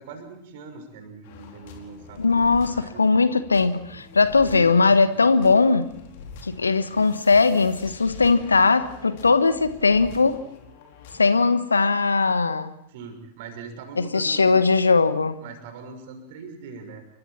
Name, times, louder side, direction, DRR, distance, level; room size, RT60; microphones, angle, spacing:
voice 1, 0.0-3.0 4.4-4.8 12.9-14.6 15.4-17.1, right 4 dB, 50° right, 6.2 m, -41 dB
sound 1, 1.2-11.4, left 5 dB, 50° left, 4.6 m, -45 dB
voice 2, 2.2-5.9 6.4-10.4 11.1-12.7 14.0-15.3, left 4 dB, 75° left, 1.3 m, -19 dB
29.0 x 23.5 x 4.5 m
figure-of-eight pair, 90°, 0 cm